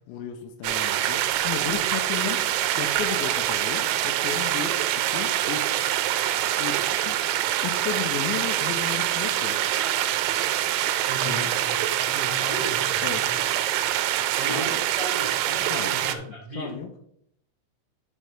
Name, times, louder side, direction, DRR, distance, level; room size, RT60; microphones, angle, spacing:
voice 1, 0.1-2.4 2.7-4.8 5.1-5.9 6.6-7.2 7.6-9.6 11.3-11.5 13.0-13.2 14.5-14.7 15.7-15.9 16.6-16.9, left 7 dB, 90° left, 4 dB, 2.6 m, -34 dB
sound 1, 0.6-16.2, right 12 dB, 90° right, 3.3 m, -25 dB
voice 2, 11.1-13.4 14.3-16.7, equal, 65° right, -5 dB, 1.0 m, -36 dB
11.5 x 4.4 x 3.5 m, 0.72 s
omnidirectional pair, 5.9 m